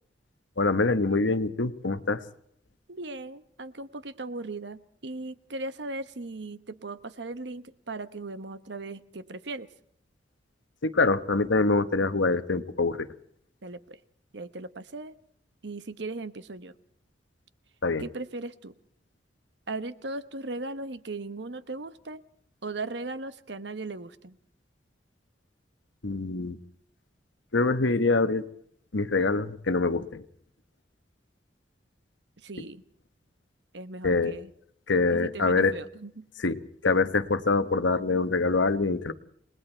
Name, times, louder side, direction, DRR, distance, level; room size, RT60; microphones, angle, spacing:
voice 1, 0.6-2.2 10.8-13.1 17.8-18.0 26.0-26.6 27.5-28.4 28.9-30.2 34.0-34.3 34.9-35.7 36.4-39.1, left 3 dB, 90° left, 11 dB, 1.1 m, -25 dB
voice 2, 2.9-9.7 13.6-14.0 14.3-15.2 15.6-16.7 18.0-18.7 19.7-22.2 22.6-24.4 32.4-32.8 33.7-34.5 35.1-36.3, right 2 dB, 70° right, 13 dB, 1.0 m, -38 dB
29.0 x 19.5 x 4.5 m, 0.67 s
head